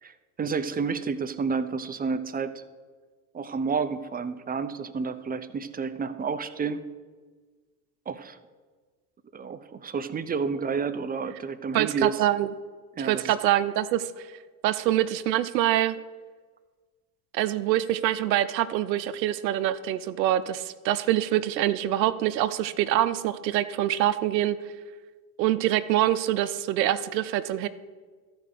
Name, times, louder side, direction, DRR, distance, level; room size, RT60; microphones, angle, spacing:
voice 1, 0.0-2.6 3.3-6.8 8.1-8.4 9.3-12.3 13.0-13.4, right 5 dB, 20° right, 11 dB, 0.6 m, -30 dB
voice 2, 11.7-12.5 13.0-14.3 14.6-16.0 17.3-24.6 25.4-27.7, right 13 dB, 80° right, 13 dB, 0.7 m, -25 dB
13.0 x 5.1 x 6.7 m, 1.4 s
hypercardioid pair, 75°, 50 cm